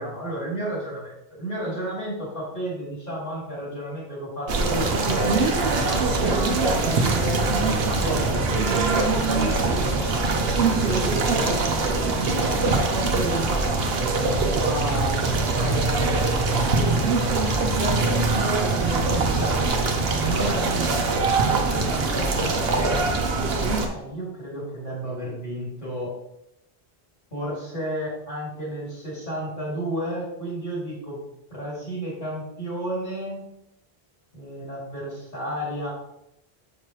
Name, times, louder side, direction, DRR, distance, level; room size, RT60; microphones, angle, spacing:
voice 1, 0.0-5.3 5.8-10.1 10.7-11.6 12.1-17.2 17.7-23.0 23.8-26.1 27.3-31.2 31.5-33.4 34.3-35.9, right 1 dB, 50° left, -7 dB, 2.8 m, -32 dB
sound 1, 4.5-23.9, right 3 dB, 70° right, 1.0 m, -23 dB
6.5 x 5.6 x 3.0 m, 0.81 s
omnidirectional pair, 1.1 m